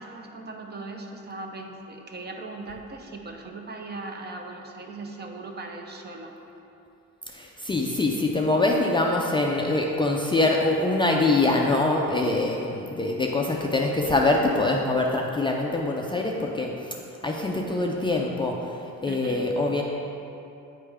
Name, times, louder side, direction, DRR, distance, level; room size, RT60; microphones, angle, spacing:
voice 1, 0.0-6.3 19.1-19.5, right 2 dB, 35° right, 2 dB, 0.6 m, -39 dB
voice 2, 7.3-16.9 17.2-18.5 19.0-19.8, left 2 dB, 15° left, -1 dB, 0.4 m, -24 dB
8.6 x 3.3 x 4.8 m, 2.9 s
cardioid pair, 125°, 30 cm